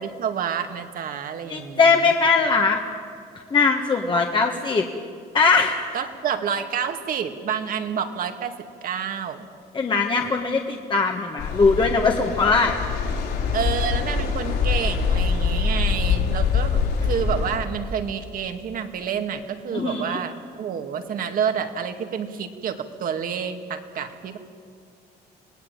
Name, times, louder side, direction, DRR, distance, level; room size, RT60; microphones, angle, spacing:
voice 1, 0.0-2.1 5.9-8.5 8.8-9.5 13.5-24.4, right 7 dB, 55° right, 7 dB, 2.2 m, -29 dB
voice 2, 1.5-2.8 3.5-4.8 5.3-5.9 9.7-12.8 19.7-20.2, left 4 dB, 30° left, 2 dB, 1.7 m, -20 dB
sound 1, 11.4-17.6, left 5 dB, 70° left, 5.9 m, -24 dB
26.5 x 18.5 x 9.1 m, 2.3 s
cardioid pair, 110°, 17 cm